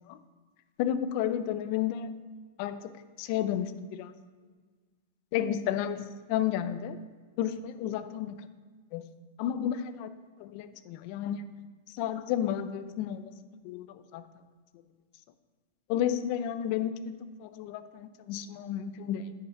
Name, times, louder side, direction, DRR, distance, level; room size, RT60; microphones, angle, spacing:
voice 1, 0.8-2.1 2.6-2.9 3.2-4.1 5.3-7.0 7.4-8.3 8.9-9.0 9.4-10.1 10.4-11.5 12.0-13.3 13.6-14.2 15.9-17.1 17.4-19.3, left 10 dB, 45° left, 11 dB, 0.5 m, -32 dB
9.4 x 5.8 x 4.5 m, 1.5 s
supercardioid pair, 155°, 0 cm